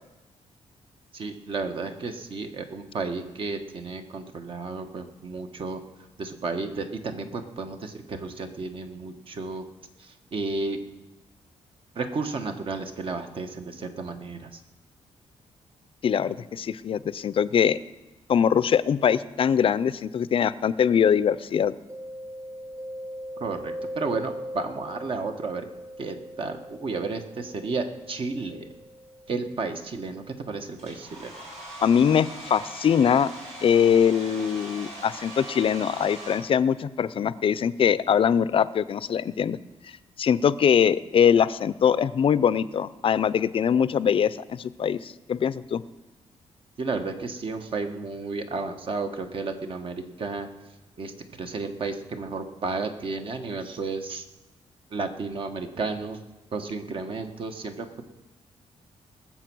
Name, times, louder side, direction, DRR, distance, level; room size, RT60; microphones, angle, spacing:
voice 1, 1.1-5.8 6.2-9.6 10.0-10.8 11.9-14.6 23.4-25.6 26.0-28.7 29.3-31.3 46.8-50.5 51.0-51.1 51.4-54.2 54.9-56.2 56.5-58.0, right 3 dB, 50° right, 6 dB, 1.3 m, -32 dB
voice 2, 16.0-17.8 18.3-21.7 31.8-33.3 33.6-39.6 40.2-45.8, left 8 dB, 50° left, 17 dB, 0.5 m, -22 dB
Mallet percussion, 21.9-31.5, equal, 25° right, 1.3 m, -41 dB
Domestic sounds home sounds, 30.8-36.4, right 1 dB, 65° right, 6.1 m, -41 dB
20.0 x 7.4 x 6.2 m, 1.0 s
cardioid pair, 120°, 12 cm